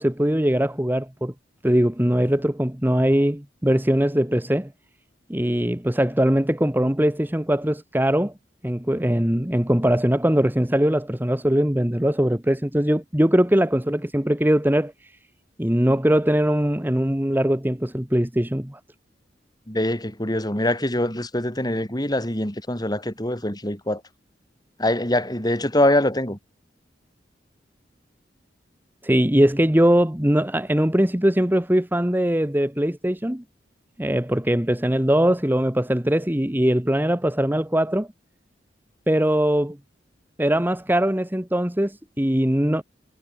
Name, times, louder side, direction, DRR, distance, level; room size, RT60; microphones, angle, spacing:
voice 1, 0.0-1.3 1.6-4.7 5.3-8.3 8.6-14.9 15.6-18.8 29.0-33.4 34.0-38.1 39.1-39.8 40.4-42.8, equal, 10° right, 1.4 m, -21 dB
voice 2, 19.7-24.0 24.8-26.4, left 1 dB, 20° left, 5.4 m, -23 dB
head